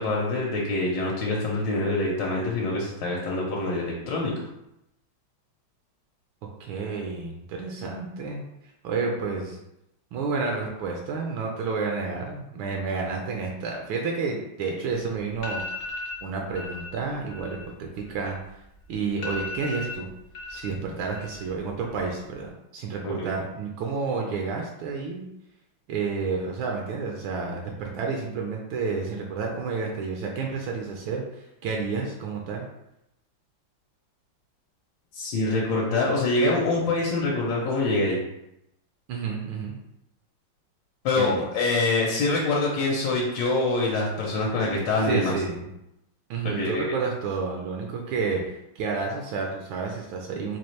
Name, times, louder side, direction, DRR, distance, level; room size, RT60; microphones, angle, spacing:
voice 1, 0.0-4.3 23.0-23.3 35.1-38.2 41.0-45.3 46.4-46.9, left 2 dB, 75° left, -3 dB, 1.3 m, -25 dB
voice 2, 6.6-8.4 8.8-9.6 10.1-15.9 16.2-18.4 18.9-20.1 20.5-25.2 25.9-32.6 39.1-39.7 41.2-41.4 45.0-45.6 46.3-50.6, right 4 dB, 80° right, 1 dB, 1.3 m, -30 dB
sound 1, 14.9-15.0 15.3-16.2 16.6-16.9 17.2-18.6 18.9-19.0 19.2-20.7 21.0-21.6 21.9-22.4, left 2 dB, 55° left, 0.9 m, -36 dB
4.4 x 2.4 x 3.1 m, 0.84 s
omnidirectional pair, 2.2 m